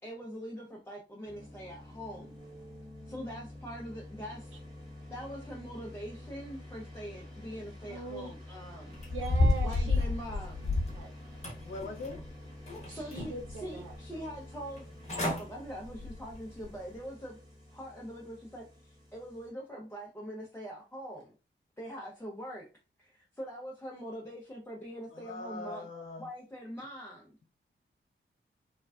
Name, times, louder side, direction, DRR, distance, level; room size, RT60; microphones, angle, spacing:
voice 1, 0.0-2.4 3.1-4.6 5.1-9.0 9.6-10.7 12.6-13.3 13.6-14.9 15.1-17.4 17.7-21.3 21.8-22.7 23.0-25.9 26.2-27.4, equal, 10° left, -4 dB, 0.5 m, -43 dB
sound 1, 1.2-19.5, left 1 dB, 20° right, 1.2 m, -49 dB
voice 2, 7.9-8.6 8.9-10.2 10.6-11.1 12.9-13.9, right 3 dB, 85° right, 0 dB, 0.5 m, -42 dB
sound 2, 9.0-11.0 11.4-12.3 12.7-13.5 13.9-14.0 14.8-14.9 15.1-15.4 15.9-16.1 16.6-16.7, left 2 dB, 35° left, 1.0 m, -30 dB
voice 3, 11.6-12.2 25.1-26.3, left 3 dB, 70° left, 0 dB, 0.8 m, -41 dB
3.2 x 2.2 x 2.3 m, 0.33 s
wide cardioid pair, 130°, 20 cm